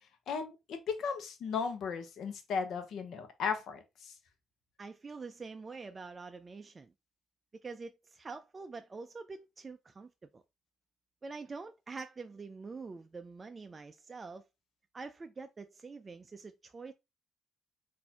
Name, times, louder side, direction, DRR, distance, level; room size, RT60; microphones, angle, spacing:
voice 1, 0.3-4.1, left 5 dB, 70° left, 0.8 m, -36 dB
voice 2, 4.8-6.9 7.5-10.4 11.2-14.5 14.9-16.9, right 4 dB, 30° right, 0.3 m, -45 dB
4.1 x 2.6 x 2.8 m
cardioid pair, 90°, 0 cm